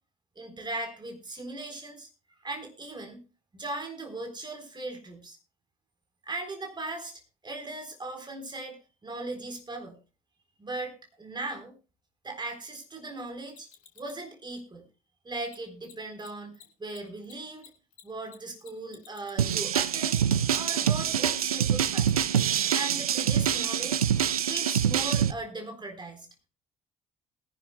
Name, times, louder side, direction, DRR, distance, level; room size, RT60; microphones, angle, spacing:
voice 1, 0.4-2.1 2.4-3.2 3.5-5.4 6.2-10.0 10.6-11.7 12.2-13.7 14.0-14.8 15.2-17.7 18.0-20.2 20.5-22.1 22.7-24.1 24.5-26.3, right 2 dB, 25° right, 5 dB, 4.1 m, -38 dB
Mechanisms, 13.5-14.2 15.4-15.6 15.8-15.9 16.2-16.3 16.5-20.1 20.5-20.6 22.1-22.2, left 9 dB, 75° left, 1.3 m, -51 dB
sound 1, 19.4-25.3, right 9 dB, 85° right, 0.4 m, -25 dB
20.0 x 11.0 x 2.3 m, 0.34 s
figure-of-eight pair, 45°, 18 cm